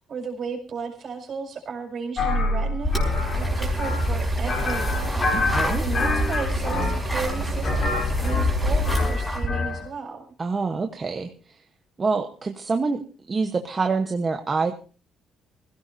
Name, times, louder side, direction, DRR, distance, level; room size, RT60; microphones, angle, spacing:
voice 1, 0.1-10.2, right 5 dB, 45° right, 3 dB, 5.5 m, -35 dB
sound 1, 2.2-9.9, left 3 dB, 40° left, 3.8 m, -27 dB
sound 2, 2.8-9.5, equal, ahead, 5.1 m, -26 dB
voice 2, 5.3-5.8 10.4-11.6 12.0-13.0 13.3-14.7, right 4 dB, 25° right, 5 dB, 1.1 m, -26 dB
25.0 x 16.5 x 2.7 m, 0.37 s
cardioid pair, 160°, 0 cm